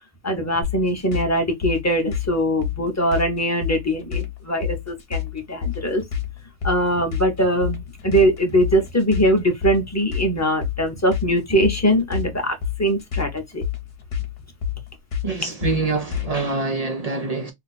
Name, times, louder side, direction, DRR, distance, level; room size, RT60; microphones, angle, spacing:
voice 1, 0.2-6.0 6.6-13.6, equal, 15° left, 0.6 m, -21 dB
sound 1, 0.6-16.5, left 9 dB, 50° left, 1.0 m, -29 dB
voice 2, 15.2-17.5, right 4 dB, 75° right, 0.3 m, -25 dB
2.7 x 2.2 x 4.0 m
omnidirectional pair, 1.4 m